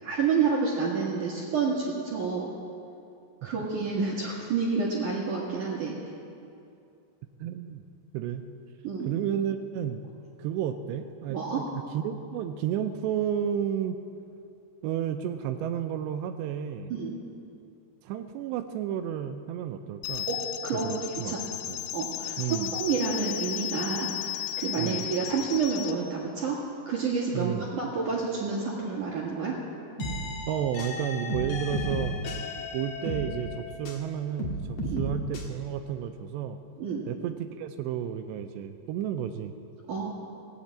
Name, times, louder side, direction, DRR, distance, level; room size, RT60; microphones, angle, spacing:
voice 1, 0.0-2.5 3.4-6.0 8.8-9.1 11.3-11.6 16.9-17.2 20.3-20.4 20.6-20.9 21.2-21.4 21.9-22.4 22.7-26.6 26.9-29.6 34.8-35.0 36.8-37.1 39.9-40.1, right 5 dB, 55° right, -4 dB, 2.6 m, -29 dB
voice 2, 7.4-7.8 8.1-8.4 9.1-10.0 10.4-14.0 14.8-16.9 18.0-20.3 20.7-21.8 22.4-22.8 24.8-25.1 27.3-27.7 30.5-32.2 32.7-36.6 37.1-39.5, right 9 dB, 85° right, 7 dB, 2.7 m, -32 dB
sound 1, 20.0-26.0, left 12 dB, 85° left, 2.4 m, -35 dB
sound 2, 30.0-34.1 34.4-35.4, equal, 50° left, 2.1 m, -33 dB
18.5 x 8.2 x 8.7 m, 2.6 s
omnidirectional pair, 5.1 m